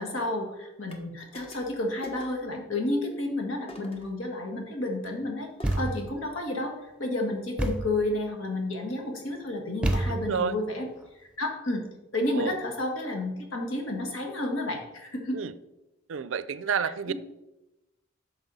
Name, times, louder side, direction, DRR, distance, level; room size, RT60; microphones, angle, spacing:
voice 1, 0.0-5.5 5.7-6.7 7.0-10.9 11.4-11.8 12.1-15.4 17.1-17.2, left 1 dB, 75° left, 3 dB, 1.7 m, -31 dB
sound 1, 0.9-1.0 1.3-1.8 2.0-2.5 3.7-4.1 5.6-6.0, left 1 dB, 30° left, 1.0 m, -46 dB
Thump thud, 5.6-6.2 7.6-8.0 9.8-10.5, right 1 dB, 5° right, 0.7 m, -28 dB
voice 2, 10.1-10.6 12.3-12.6 15.3-15.5 16.1-17.1, right 6 dB, 65° right, 15 dB, 0.4 m, -30 dB
9.1 x 6.3 x 4.1 m, 0.98 s
head